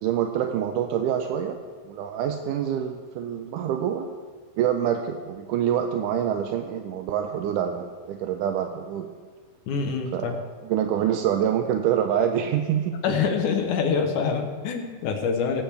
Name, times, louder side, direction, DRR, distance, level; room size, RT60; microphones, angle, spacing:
voice 1, 0.0-1.6 1.9-4.1 4.6-9.1 10.1-10.3 10.6-13.0, right 9 dB, 80° right, 5 dB, 2.0 m, -26 dB
voice 2, 9.7-10.3 13.0-15.6, left 5 dB, 70° left, 4 dB, 2.4 m, -25 dB
19.0 x 9.2 x 3.4 m, 1.5 s
omnidirectional pair, 4.0 m